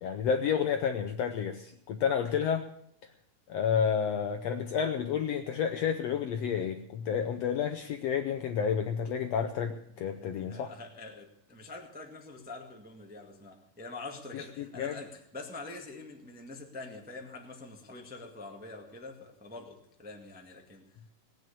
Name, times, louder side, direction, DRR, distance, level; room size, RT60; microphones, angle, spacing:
voice 1, 0.0-2.7 3.5-10.7 14.3-15.0, left 7 dB, 75° left, 7 dB, 1.6 m, -30 dB
voice 2, 10.0-20.9, left 3 dB, 5° right, 2 dB, 0.9 m, -45 dB
18.5 x 9.4 x 6.8 m, 0.71 s
omnidirectional pair, 3.7 m